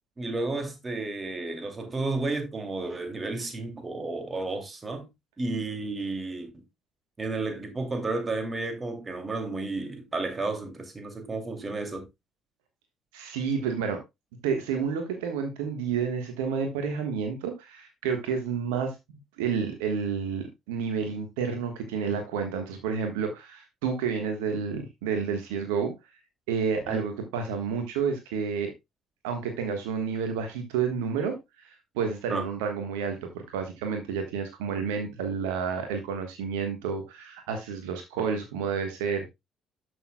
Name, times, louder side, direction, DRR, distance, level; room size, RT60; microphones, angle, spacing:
voice 1, 0.2-5.1 5.4-6.6 7.2-12.1 26.9-27.0 32.3-32.5, right 3 dB, 25° right, 2.5 m, -32 dB
voice 2, 13.1-14.0 14.4-18.9 19.4-25.9 26.5-28.7 29.2-31.7 31.9-39.3, right 6 dB, 70° right, 1.3 m, -30 dB
12.5 x 6.4 x 2.2 m
figure-of-eight pair, 45°, 0 cm